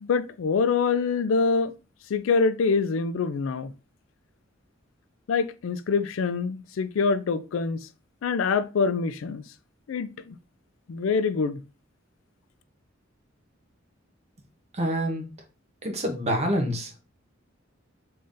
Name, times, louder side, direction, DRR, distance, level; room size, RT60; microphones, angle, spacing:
voice 1, 0.0-1.7 2.1-3.7 5.3-7.8 8.2-9.4 9.9-10.4 10.9-11.6, left 5 dB, 75° left, 0.4 m, -25 dB
voice 2, 14.8-15.3 15.8-16.9, equal, 35° right, 0.9 m, -26 dB
3.6 x 3.3 x 2.6 m
head